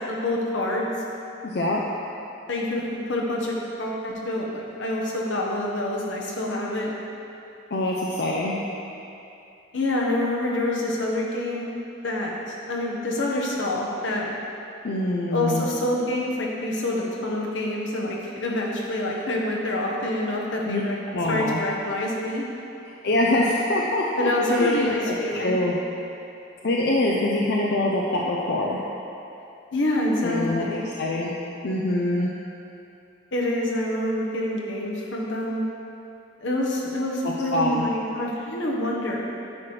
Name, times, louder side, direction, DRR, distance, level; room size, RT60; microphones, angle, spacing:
voice 1, 0.1-0.9 2.5-6.9 9.7-11.7 12.0-14.3 15.3-20.9 21.3-22.4 24.2-25.5 29.7-30.8 33.3-35.6 36.4-39.3, left 1 dB, 80° left, -3 dB, 1.2 m, -26 dB
voice 2, 1.4-1.8 7.7-8.5 14.8-15.6 20.6-20.8 21.1-21.6 23.0-25.8 26.6-28.8 30.2-31.3 31.6-32.3 37.2-37.8, left 1 dB, 60° left, -3 dB, 0.6 m, -24 dB
9.7 x 6.1 x 3.3 m, 2.7 s
head